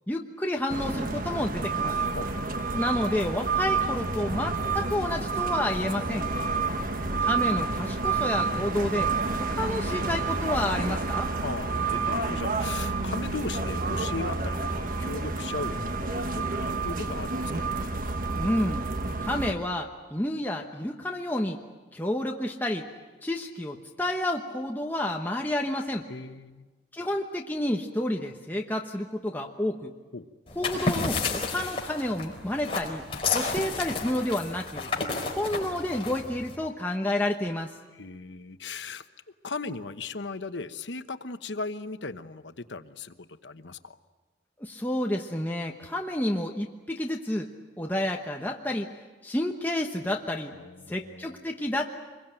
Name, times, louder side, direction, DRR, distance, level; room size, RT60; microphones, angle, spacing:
voice 1, 0.1-2.0 2.7-6.3 7.2-11.3 18.4-18.9 19.2-21.6 21.9-22.8 23.2-26.1 26.9-29.9 30.6-33.1 33.3-34.9 35.4-37.7 44.6-47.5 47.8-48.9 49.2-50.6 50.9-51.9, left 1 dB, 10° left, 1 dB, 1.1 m, -30 dB
sound 1, 0.7-19.5, right 4 dB, 50° right, 1.3 m, -29 dB
voice 2, 6.3-7.2 11.4-17.5 26.1-26.7 30.1-30.3 37.9-39.0 39.4-43.1 43.4-44.0 50.5-51.3, left 3 dB, 90° left, 10 dB, 1.1 m, -37 dB
sound 2, 30.5-36.5, left 4 dB, 30° left, 4.4 m, -31 dB
25.5 x 22.5 x 9.0 m, 1.3 s
head